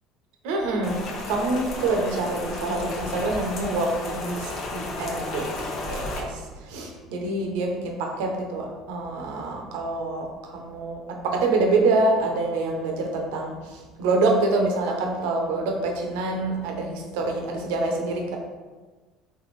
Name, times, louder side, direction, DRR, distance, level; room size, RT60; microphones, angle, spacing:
voice 1, 0.4-1.0 1.3-18.4, right 2 dB, 75° right, 1 dB, 0.6 m, -26 dB
Rain, 0.8-6.2, left 2 dB, 60° left, 0.8 m, -33 dB
3.4 x 3.2 x 3.2 m, 1.3 s
hypercardioid pair, 70°, 0 cm